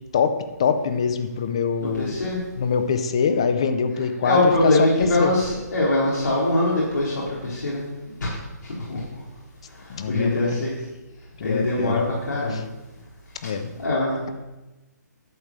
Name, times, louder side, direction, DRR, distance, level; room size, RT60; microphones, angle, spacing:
voice 1, 0.6-2.2 2.6-4.4 4.6-5.3 9.9-10.6 11.4-12.0 12.5-12.6 13.4-13.7, left 6 dB, 20° left, 10 dB, 0.4 m, -24 dB
voice 2, 1.8-2.4 4.2-7.8 8.2-8.4 8.6-9.0 10.1-10.8 11.4-12.6 13.8-14.2, left 2 dB, 85° left, -7 dB, 3.9 m, -22 dB
11.5 x 4.9 x 7.3 m, 1.1 s
hypercardioid pair, 180°, 10 cm